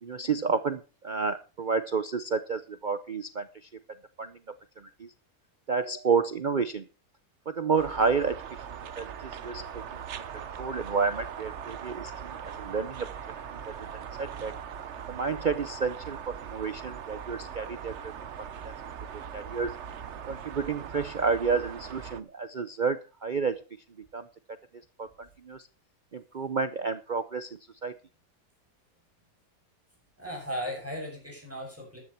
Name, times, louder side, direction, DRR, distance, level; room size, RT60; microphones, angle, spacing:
voice 1, 0.0-3.5 4.2-4.4 4.8-5.1 5.7-6.9 7.5-8.4 9.0-10.0 10.3-13.1 13.7-14.5 15.1-18.1 18.6-18.7 19.3-19.8 20.3-23.6 24.1-24.3 25.0-25.1 25.4-25.7 26.1-27.9, right 5 dB, 70° right, 11 dB, 0.4 m, -30 dB
sound 1, 7.8-22.2, right 8 dB, 50° right, 1.0 m, -40 dB
voice 2, 30.2-32.0, equal, 10° right, -1 dB, 7.8 m, -36 dB
14.0 x 10.5 x 4.4 m, 0.33 s
omnidirectional pair, 1.8 m